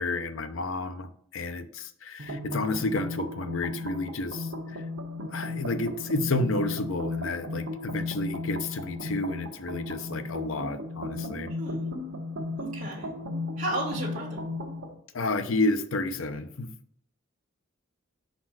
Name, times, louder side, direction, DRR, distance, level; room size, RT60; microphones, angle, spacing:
voice 1, 0.0-4.8 5.3-11.5 15.1-16.7, left 2 dB, 80° left, 9 dB, 0.6 m, -31 dB
sound 1, 2.2-14.9, left 2 dB, 75° right, 1.0 m, -35 dB
voice 2, 11.6-11.9 12.6-13.2 13.6-14.4, right 1 dB, 40° right, -5 dB, 1.6 m, -34 dB
5.3 x 4.2 x 5.9 m, 0.63 s
head